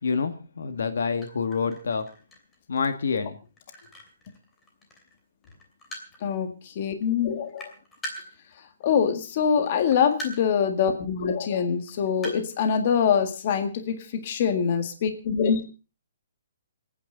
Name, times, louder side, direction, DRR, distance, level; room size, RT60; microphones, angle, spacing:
voice 1, 0.0-2.1 2.7-3.4, left 5 dB, 75° left, 9 dB, 1.9 m, -27 dB
sound 1, 1.2-5.2 5.4-6.4 6.9-7.0 7.3-9.0 9.6-10.6 10.9-11.0 11.6-12.9, equal, 10° left, 2.8 m, -42 dB
voice 2, 6.2-7.7 8.8-15.7, left 7 dB, 35° left, 7 dB, 1.8 m, -24 dB
27.5 x 9.6 x 3.9 m, 0.33 s
hypercardioid pair, 170°, 0 cm